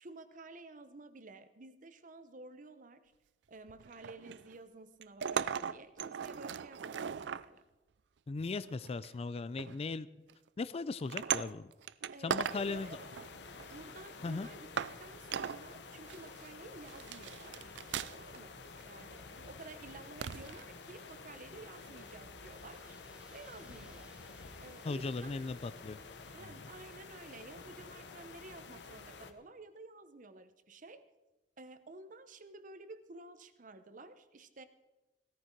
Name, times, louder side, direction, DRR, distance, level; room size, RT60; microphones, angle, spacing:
voice 1, 0.0-3.1 3.5-7.6 12.1-13.0 13.7-17.8 18.1-23.0 23.3-24.1 24.6-25.4 26.3-31.1 31.6-34.7, right 3 dB, 45° right, 11 dB, 0.9 m, -52 dB
sound 1, 3.7-4.6 5.0-7.4 8.4-9.1 9.6-9.8 10.3-10.5 11.0-12.6 12.9-13.8 14.3-14.4 14.8-15.0 15.3-15.6 16.1-16.5 16.9-18.4 18.6-18.8 20.2-20.6 22.1-22.2, right 8 dB, 75° right, 0.4 m, -38 dB
voice 2, 8.3-10.1 10.6-11.7 12.2-13.0 14.2-14.5 24.8-26.0 26.4-26.6, left 3 dB, 35° left, 17 dB, 0.4 m, -38 dB
sound 2, 12.5-29.3, left 4 dB, 70° left, 1.0 m, -50 dB
sound 3, 22.2-27.7, right 1 dB, 5° right, 1.3 m, -66 dB
16.5 x 14.0 x 4.5 m, 1.1 s
head